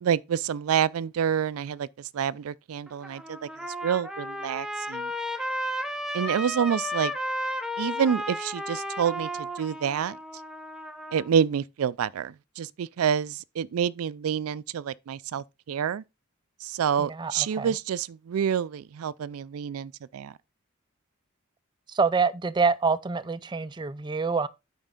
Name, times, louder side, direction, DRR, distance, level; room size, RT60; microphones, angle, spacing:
voice 1, 0.0-1.9 2.1-3.4 3.8-5.1 6.1-7.1 7.8-10.2 11.1-16.0 16.6-20.3, right 8 dB, 90° right, 0.4 m, -28 dB
Trumpet, 2.9-11.3, equal, ahead, 0.8 m, -33 dB
voice 2, 17.0-17.8 21.9-24.5, right 4 dB, 20° right, 0.4 m, -26 dB
8.9 x 5.2 x 3.7 m
head